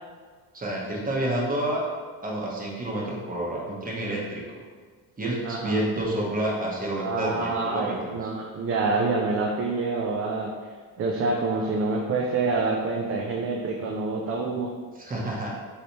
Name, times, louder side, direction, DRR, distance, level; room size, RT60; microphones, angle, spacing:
voice 1, 0.5-1.8 2.2-4.4 5.2-8.3 15.0-15.5, right 1 dB, 20° right, -3 dB, 0.9 m, -29 dB
voice 2, 5.4-5.8 7.0-10.5 11.0-14.7, right 3 dB, 35° right, 0 dB, 0.4 m, -27 dB
3.1 x 2.7 x 2.9 m, 1.6 s
cardioid pair, 90°, 40 cm